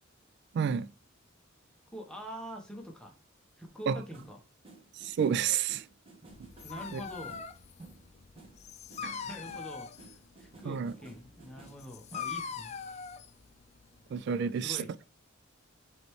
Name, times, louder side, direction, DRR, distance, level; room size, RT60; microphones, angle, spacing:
voice 1, 0.5-0.9 3.9-4.0 4.9-5.9 6.9-7.0 9.0-9.2 10.6-10.9 14.1-14.8, right 7 dB, 55° right, 0.3 m, -30 dB
voice 2, 1.9-3.1 3.6-4.4 6.6-7.4 9.0-12.8 14.6-14.9, equal, 5° left, 1.0 m, -45 dB
sound 1, 3.7-12.6, right 2 dB, 25° right, 1.1 m, -55 dB
Dog, 6.3-14.2, left 6 dB, 35° left, 0.4 m, -43 dB
5.1 x 3.2 x 3.0 m
head